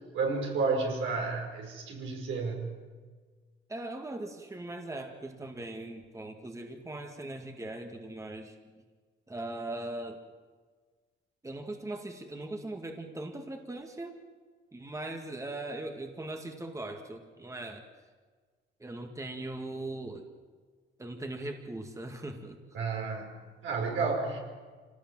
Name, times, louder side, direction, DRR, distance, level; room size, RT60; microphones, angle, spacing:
voice 1, 0.1-2.6 22.7-24.4, right 4 dB, 80° right, 1 dB, 5.4 m, -31 dB
voice 2, 3.7-8.6 9.3-10.2 11.4-14.1 14.7-17.8 18.8-20.2 21.0-22.6, right 2 dB, 15° right, 4 dB, 2.1 m, -39 dB
25.5 x 18.5 x 7.5 m, 1.5 s
cardioid pair, 90°, 20 cm